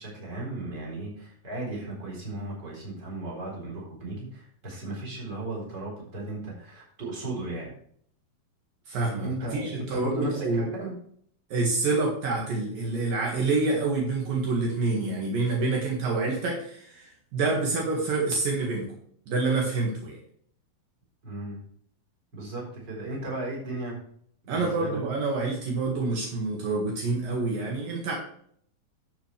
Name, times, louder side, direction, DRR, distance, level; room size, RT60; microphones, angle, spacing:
voice 1, 0.0-7.7 9.2-10.9 21.2-21.6 22.3-24.0 24.5-25.0, right 2 dB, 30° right, -2 dB, 4.6 m, -36 dB
voice 2, 8.9-10.7 11.5-18.9 19.3-20.2 24.5-28.2, right 3 dB, 70° right, -2 dB, 3.4 m, -27 dB
12.5 x 7.5 x 3.3 m, 0.63 s
omnidirectional pair, 4.2 m